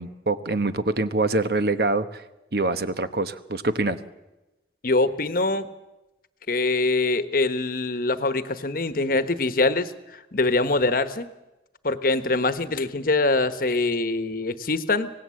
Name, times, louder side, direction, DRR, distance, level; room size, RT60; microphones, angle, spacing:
voice 1, 0.0-2.2 2.5-4.0, right 2 dB, 60° right, 11 dB, 1.1 m, -25 dB
voice 2, 4.8-5.7 6.5-9.9 10.3-11.3 11.8-15.1, left 2 dB, 50° left, 12 dB, 1.1 m, -23 dB
25.0 x 18.5 x 7.6 m, 1.0 s
head